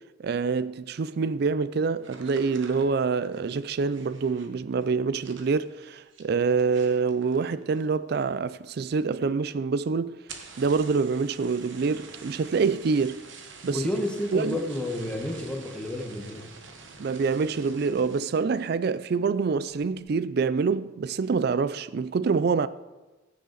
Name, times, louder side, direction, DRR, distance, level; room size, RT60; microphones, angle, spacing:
voice 1, 0.2-10.1 10.6-13.2 13.6-13.8 14.3-14.6 17.0-22.7, right 5 dB, 55° right, 0.4 m, -26 dB
sound 1, 2.0-8.1 8.4-8.9 9.2-9.3 9.6-9.7 10.1-18.5 18.9-19.3 19.7-20.1, right 5 dB, 80° right, 1.2 m, -48 dB
voice 2, 13.7-16.5, left 1 dB, 5° left, 1.2 m, -30 dB
14.5 x 6.7 x 3.9 m
head